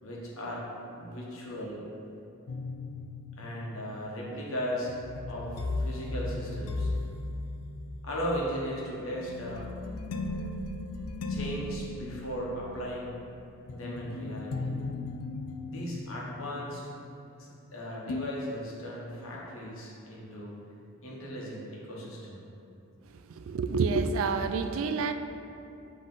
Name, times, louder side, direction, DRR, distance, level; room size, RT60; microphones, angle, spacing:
voice 1, 0.0-0.7 1.0-1.8 3.4-4.9 5.3-6.9 8.0-9.7 11.3-13.1 13.7-14.7 15.6-16.9 17.4-20.5 21.0-22.4, equal, 70° left, -4 dB, 1.2 m, -37 dB
sound 1, 2.5-17.7 18.1-18.2, left 2 dB, 90° left, 0.4 m, -37 dB
voice 2, 23.1-25.1, right 4 dB, 65° right, 8 dB, 0.3 m, -28 dB
7.5 x 3.2 x 3.8 m, 2.8 s
head